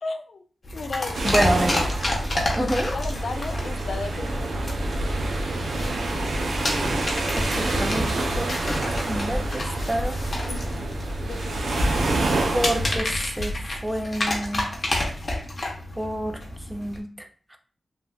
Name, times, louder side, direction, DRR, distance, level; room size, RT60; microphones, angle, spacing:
voice 1, 0.0-0.4 0.7-1.5 2.6-4.7 10.5-11.9, left 3 dB, 70° left, 8 dB, 0.3 m, -35 dB
sound 1, 0.6-17.0, left 1 dB, 45° left, 0.8 m, -30 dB
sound 2, 1.1-13.0, right 2 dB, 90° right, 0.5 m, -27 dB
voice 2, 1.2-1.8 2.5-2.9 7.4-8.1 8.4-8.8 9.0-10.2 12.5-14.7 16.0-16.4 16.7-17.1, right 1 dB, 10° right, 5 dB, 0.4 m, -27 dB
3.2 x 2.4 x 2.2 m, 0.41 s
cardioid pair, 70°, 0 cm